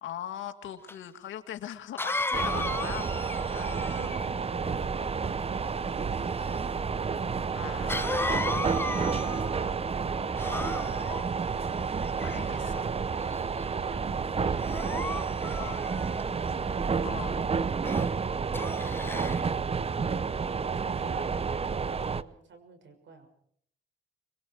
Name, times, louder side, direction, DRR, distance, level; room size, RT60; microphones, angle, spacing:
voice 1, 0.0-3.1 3.5-3.7 4.6-4.8 7.5-8.4 12.2-12.9 15.6-15.8 17.0-17.4, left 11 dB, 75° left, 7 dB, 2.4 m, -40 dB
Cough, 0.9-1.0 2.0-4.4 7.9-9.7 10.4-11.2 12.0-12.7 13.3-13.6 14.6-16.2 17.8-18.1 18.5-19.4, left 2 dB, 10° left, 0.9 m, -35 dB
sound 1, 2.3-22.2, right 5 dB, 30° right, 0.9 m, -30 dB
voice 2, 3.7-7.4 13.4-15.5 16.1-17.8 20.7-23.3, right 5 dB, 65° right, 7 dB, 6.4 m, -49 dB
26.5 x 23.0 x 4.8 m, 0.64 s
cardioid pair, 90°, 20 cm